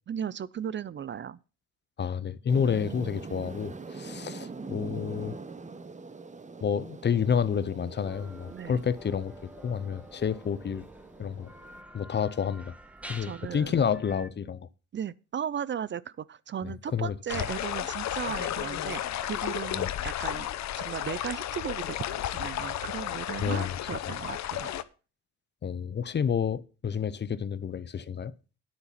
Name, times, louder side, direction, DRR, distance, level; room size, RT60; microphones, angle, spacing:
voice 1, 0.1-1.4 8.5-8.8 13.2-13.7 14.9-20.5 20.8-24.7, right 8 dB, 40° right, 0.5 m, -36 dB
voice 2, 2.0-5.4 6.6-9.3 9.6-10.9 11.2-11.5 11.9-12.7 13.1-14.7 16.6-17.1 19.7-19.9 23.4-23.7 25.6-28.3, left 7 dB, 35° left, 0.7 m, -29 dB
sound 1, 2.5-11.8, right 4 dB, 25° right, 1.0 m, -43 dB
sound 2, 8.0-14.3, equal, 5° right, 1.4 m, -49 dB
sound 3, 17.3-24.8, left 12 dB, 65° left, 0.7 m, -33 dB
9.6 x 8.2 x 5.7 m
cardioid pair, 90°, 30 cm